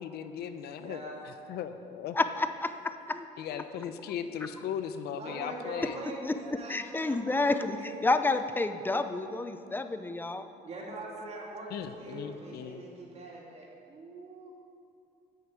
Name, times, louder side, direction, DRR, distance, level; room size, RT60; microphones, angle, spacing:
voice 1, 0.0-2.2 3.4-6.0 11.7-12.9, left 8 dB, 70° left, 10 dB, 0.8 m, -38 dB
voice 2, 0.7-1.1 3.4-3.5 5.2-8.1 10.6-11.7 12.0-14.5, right 2 dB, 40° right, -3 dB, 3.1 m, -43 dB
voice 3, 2.1-3.3 3.5-3.6 6.2-6.3 6.7-7.8 8.0-10.5, left 3 dB, 10° left, 9 dB, 0.6 m, -29 dB
9.5 x 6.8 x 9.0 m, 2.5 s
cardioid pair, 110°, 17 cm